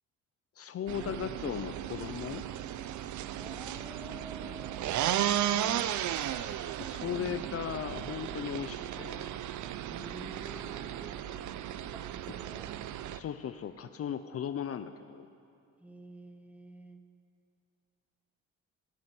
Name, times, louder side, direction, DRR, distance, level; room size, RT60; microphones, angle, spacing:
voice 1, 0.6-2.5 6.8-9.3 13.1-15.3, left 9 dB, 50° left, 11 dB, 0.6 m, -37 dB
sound 1, 0.9-13.2, right 11 dB, 75° right, 0.6 m, -35 dB
voice 2, 3.4-4.9 5.5-5.8 9.9-11.4 11.9-12.7 15.8-17.0, right 1 dB, 5° right, 6 dB, 1.1 m, -49 dB
17.0 x 10.5 x 6.1 m, 2.6 s
cardioid pair, 90°, 30 cm